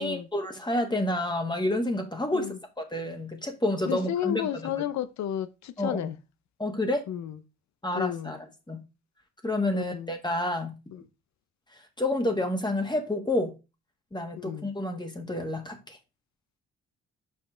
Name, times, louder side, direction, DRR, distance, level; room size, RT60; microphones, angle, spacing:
voice 1, 0.0-4.7 5.8-6.1 6.6-7.0 7.8-8.4 8.7-8.8 9.4-10.8 12.0-13.5 14.1-16.0, left 1 dB, 15° left, 1.7 m, -29 dB
voice 2, 3.9-6.2 7.1-7.4 7.9-8.4 9.7-10.2 10.9-11.0 14.4-14.7, left 10 dB, 65° left, 0.8 m, -32 dB
5.5 x 5.4 x 3.8 m
supercardioid pair, 60°, 30 cm